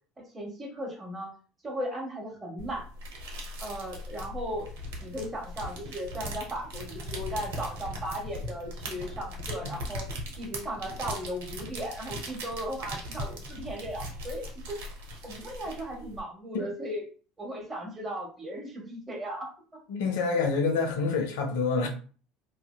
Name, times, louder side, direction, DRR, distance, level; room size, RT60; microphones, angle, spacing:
voice 1, 0.3-1.3 1.6-2.8 3.6-10.1 10.3-14.8 15.2-17.0 17.4-19.8, equal, 20° right, 1.2 m, -36 dB
sound 1, 2.6-16.2, equal, 70° right, 0.7 m, -39 dB
voice 2, 19.9-21.9, left 4 dB, 70° left, 0.5 m, -27 dB
2.5 x 2.3 x 2.2 m
hypercardioid pair, 70°, 0 cm